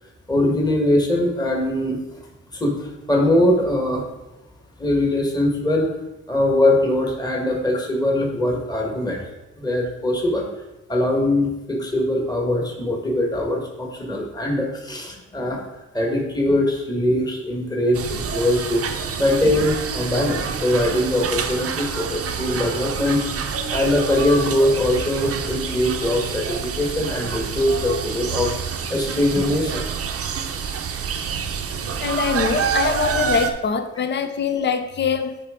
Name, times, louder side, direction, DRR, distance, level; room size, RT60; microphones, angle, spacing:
voice 1, 0.3-2.3 2.5-4.0 4.8-5.9 6.3-9.2 9.6-10.4 10.9-15.7 15.9-23.2 23.7-29.8, left 1 dB, 15° left, 0 dB, 1.4 m, -22 dB
sound 1, 17.9-33.5, right 6 dB, 50° right, 0.8 m, -27 dB
voice 2, 32.0-35.4, left 6 dB, 35° left, 9 dB, 0.7 m, -23 dB
8.6 x 4.7 x 3.7 m, 1.0 s
cardioid pair, 90°, 30 cm